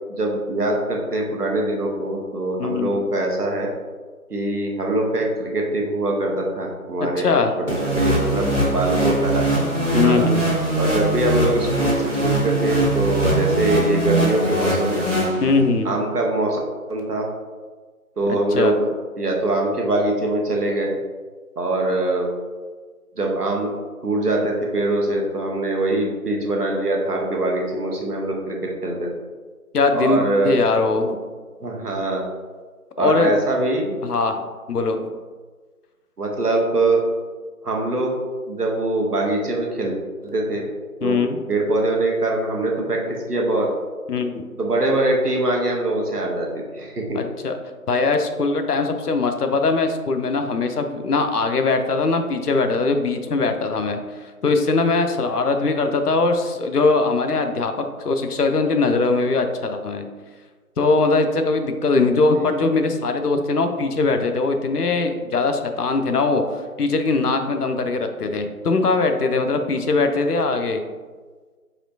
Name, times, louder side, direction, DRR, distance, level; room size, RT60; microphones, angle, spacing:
voice 1, 0.1-3.7 4.3-9.4 10.0-10.3 10.8-15.0 15.8-16.6 16.9-17.3 18.2-18.9 19.2-21.0 21.6-22.3 23.2-23.8 24.0-29.1 29.9-30.5 31.6-32.2 33.0-34.0 36.2-37.0 37.6-38.2 38.5-40.0 40.2-40.6 41.0-41.2 41.5-43.0 43.3-43.7 44.6-46.5 46.7-47.2 62.5-62.6, right 2 dB, 85° right, 0 dB, 1.0 m, -23 dB
voice 2, 2.6-3.0 7.0-7.5 9.9-10.4 15.4-15.9 18.5-18.7 29.7-31.2 33.0-33.3 34.0-35.2 41.0-41.4 44.1-44.4 47.1-47.6 47.9-60.1 60.8-70.8, left 3 dB, 90° left, 6 dB, 0.6 m, -21 dB
sound 1, 7.7-15.8, right 2 dB, 55° right, 1.0 m, -21 dB
4.2 x 3.1 x 2.6 m, 1.4 s
figure-of-eight pair, 180°, 45 cm